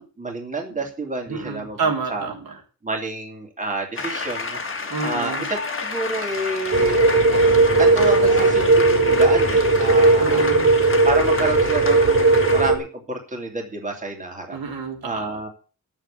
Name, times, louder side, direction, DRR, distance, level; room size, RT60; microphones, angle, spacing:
voice 1, 0.0-1.8 2.1-2.3 2.8-4.6 5.0-7.0 7.8-10.4 11.0-14.6 15.0-15.5, right 2 dB, 20° right, 1 dB, 2.9 m, -29 dB
voice 2, 1.3-2.6 4.9-5.5 10.2-10.8 14.5-15.4, right 4 dB, 80° right, 1 dB, 3.7 m, -29 dB
sound 1, 4.0-12.7, left 4 dB, 35° left, 1.9 m, -30 dB
sound 2, 6.7-12.8, right 3 dB, 45° right, 3.3 m, -17 dB
10.0 x 7.4 x 8.7 m, 0.35 s
wide cardioid pair, 165°, 35 cm